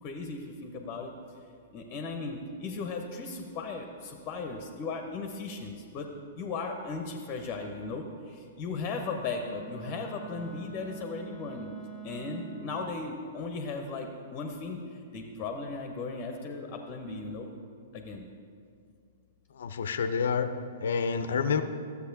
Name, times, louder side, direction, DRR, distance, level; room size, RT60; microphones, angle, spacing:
voice 1, 0.0-1.1 1.7-6.1 6.4-11.7 12.0-17.5 17.9-18.2, left 4 dB, 30° left, 4 dB, 0.7 m, -37 dB
Wind instrument woodwind instrument, 9.2-12.9, right 7 dB, 10° right, 1.1 m, -45 dB
voice 2, 19.5-21.6, left 6 dB, 60° left, 10 dB, 0.5 m, -29 dB
13.0 x 7.9 x 2.7 m, 2.4 s
figure-of-eight pair, 105°, 0 cm